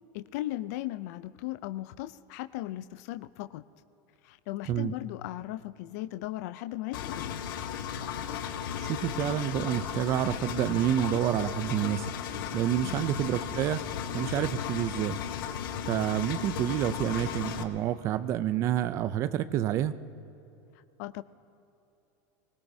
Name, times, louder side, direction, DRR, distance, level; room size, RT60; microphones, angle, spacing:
voice 1, 0.1-3.6 4.2-7.4 12.8-13.0 21.0-21.2, left 15 dB, 50° left, 16 dB, 0.4 m, -37 dB
Engine, 6.9-17.6, left 8 dB, 90° left, 1.1 m, -35 dB
voice 2, 8.9-12.1 12.5-13.8 14.1-15.2 15.9-19.9, right 11 dB, 25° right, 13 dB, 0.4 m, -28 dB
24.5 x 20.5 x 2.7 m, 2.8 s
supercardioid pair, 180°, 11 cm